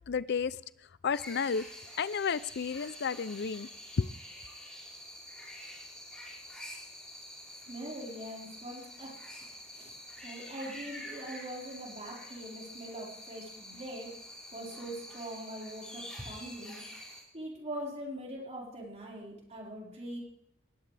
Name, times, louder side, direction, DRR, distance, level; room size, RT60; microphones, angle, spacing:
voice 1, 0.1-0.6 1.0-1.7 2.0-3.7 4.0-4.1, left 6 dB, 55° left, 0.5 m, -31 dB
sound 1, 1.1-17.2, equal, 5° left, 5.7 m, -47 dB
voice 2, 7.7-9.2 9.7-9.9 10.2-14.1 14.5-16.8 17.3-20.2, right 1 dB, 35° right, 4.9 m, -42 dB
19.5 x 17.0 x 3.4 m
head